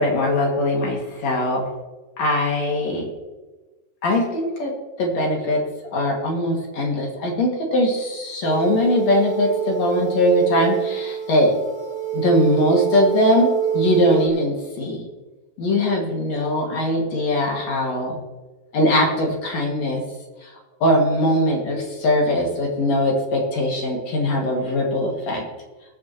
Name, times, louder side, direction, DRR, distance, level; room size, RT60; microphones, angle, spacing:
voice 1, 0.0-1.6 2.2-3.1 4.0-4.7 5.0-5.6 5.9-11.5 12.1-15.1 15.6-18.2 18.7-20.0 20.8-25.4, left 1 dB, 50° left, 0 dB, 2.7 m, -21 dB
sound 1, 8.4-14.3, right 10 dB, 90° right, 3.6 m, -25 dB
21.5 x 9.0 x 2.9 m, 1.2 s
omnidirectional pair, 4.7 m